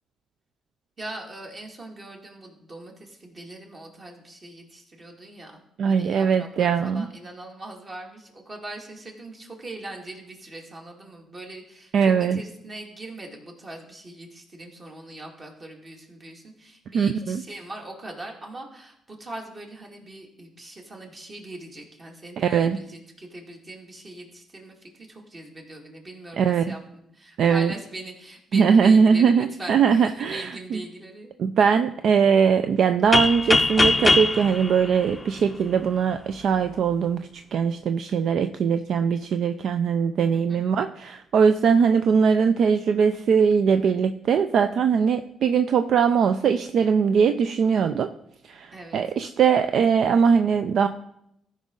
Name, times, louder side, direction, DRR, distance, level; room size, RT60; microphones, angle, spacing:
voice 1, 1.0-31.3 40.3-40.6 48.7-49.0, right 2 dB, 35° right, 1 dB, 2.1 m, -41 dB
voice 2, 5.8-7.1 11.9-12.4 16.9-17.4 22.4-22.8 26.4-26.8 27.4-27.7 28.5-30.8 31.4-48.1 48.4-50.9, right 6 dB, 65° right, 9 dB, 0.4 m, -21 dB
sound 1, 33.1-35.9, left 3 dB, 20° left, 0.5 m, -22 dB
14.0 x 5.2 x 3.8 m, 0.77 s
cardioid pair, 90°, 0 cm